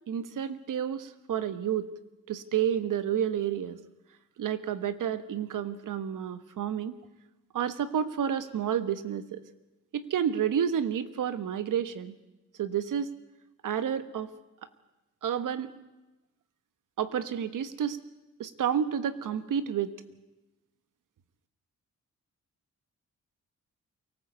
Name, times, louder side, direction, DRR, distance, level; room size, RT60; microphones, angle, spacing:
voice 1, 0.1-1.9 2.3-3.8 4.4-7.0 7.5-9.4 9.9-12.1 12.6-13.1 13.6-14.3 15.2-15.7 17.0-18.0 18.4-19.9, right 9 dB, 85° right, 12 dB, 1.4 m, -30 dB
24.0 x 18.5 x 8.2 m, 1.0 s
wide cardioid pair, 180°, 31 cm